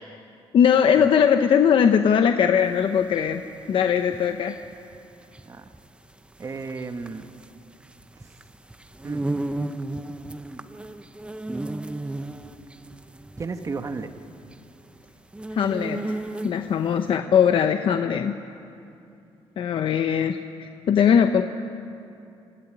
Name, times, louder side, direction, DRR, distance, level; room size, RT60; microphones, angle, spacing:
voice 1, 0.5-3.4 3.7-4.6 15.5-16.2 16.4-18.3 19.6-21.4, left 8 dB, 55° left, 7 dB, 0.8 m, -20 dB
sound 1, 2.6-16.8, right 2 dB, 10° right, 0.8 m, -34 dB
voice 2, 6.4-7.3 8.2-8.3 9.0-9.2 13.4-14.1, right 4 dB, 30° right, 8 dB, 1.2 m, -33 dB
26.5 x 14.5 x 9.9 m, 2.6 s
cardioid pair, 110°, 10 cm